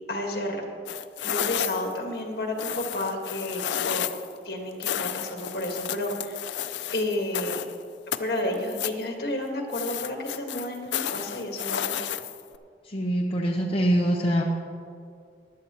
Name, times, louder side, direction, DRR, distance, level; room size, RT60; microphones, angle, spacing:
voice 1, 0.1-0.6 1.2-4.1 4.4-6.6 6.9-7.6 8.2-12.0, left 1 dB, 60° left, 1 dB, 1.7 m, -31 dB
sound 1, 0.9-2.0 2.6-4.3 4.8-7.8 8.1-9.0 9.7-12.6, left 10 dB, 90° left, 0.4 m, -31 dB
voice 2, 12.8-14.4, equal, 30° left, -2 dB, 0.8 m, -24 dB
16.0 x 11.0 x 3.0 m, 2.3 s
head